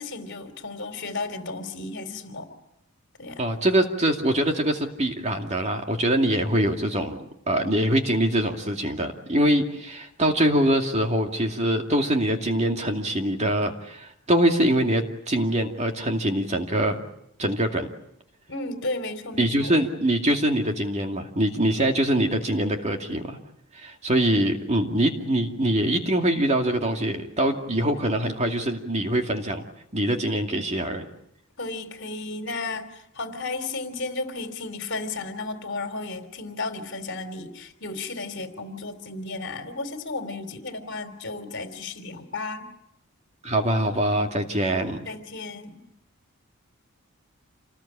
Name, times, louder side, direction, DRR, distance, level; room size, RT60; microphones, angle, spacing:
voice 1, 0.0-2.6 3.2-3.4 18.5-19.7 31.6-42.7 45.0-45.8, left 3 dB, 55° left, 8 dB, 3.3 m, -34 dB
voice 2, 3.4-17.0 17.4-17.9 19.4-23.4 23.7-29.6 29.9-31.1 43.4-45.0, right 1 dB, 30° right, 4 dB, 2.4 m, -24 dB
28.0 x 20.0 x 8.7 m, 0.81 s
head